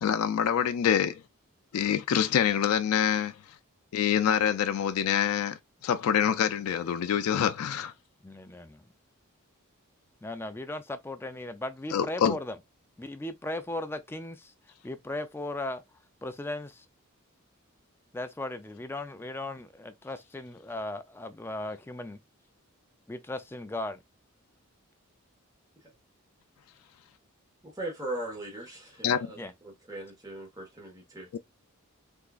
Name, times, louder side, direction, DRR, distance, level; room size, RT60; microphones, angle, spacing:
voice 1, 0.0-1.1 1.7-3.3 3.9-5.6 5.8-7.9 11.9-12.4 29.0-29.2 31.3-31.4, left 8 dB, 85° left, 0.3 m, -25 dB
voice 2, 8.2-8.8 10.2-12.6 13.0-14.5 14.8-15.8 16.2-16.9 18.1-22.2 23.1-24.0 29.4-29.5, left 2 dB, 10° left, 0.3 m, -37 dB
voice 3, 27.6-29.4 29.9-31.3, right 1 dB, 15° right, 1.3 m, -38 dB
3.5 x 2.9 x 2.4 m
head